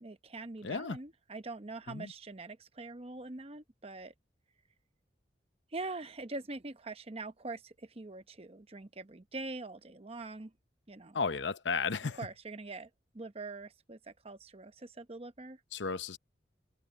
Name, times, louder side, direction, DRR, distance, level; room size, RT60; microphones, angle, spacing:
voice 1, 0.0-4.1 5.7-10.5 10.9-11.2 12.2-12.9 13.1-15.6, right 3 dB, 35° right, 0.9 m, -43 dB
voice 2, 0.6-1.0 1.9-2.1 11.1-12.2 15.7-16.2, left 5 dB, 75° left, 0.9 m, -34 dB
head